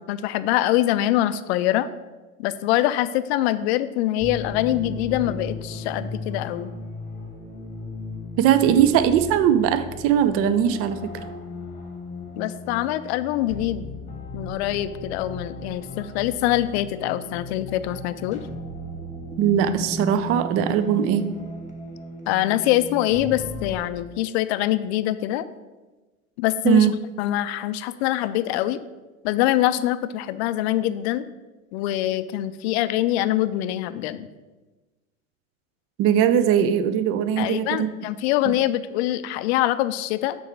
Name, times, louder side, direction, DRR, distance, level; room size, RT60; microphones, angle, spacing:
voice 1, 0.1-1.9 2.4-6.7 12.4-13.9 14.3-18.4 22.3-25.4 26.4-26.9 27.2-28.8 29.2-31.3 31.7-34.3 37.4-40.4, left 14 dB, 50° left, 14 dB, 0.5 m, -24 dB
sound 1, 4.2-23.8, left 1 dB, 15° left, 1.2 m, -36 dB
voice 2, 8.4-11.1 19.4-21.4 26.6-26.9 36.0-37.9, right 9 dB, 35° right, 12 dB, 0.5 m, -20 dB
6.3 x 4.6 x 4.6 m, 1.2 s
hypercardioid pair, 85°, 42 cm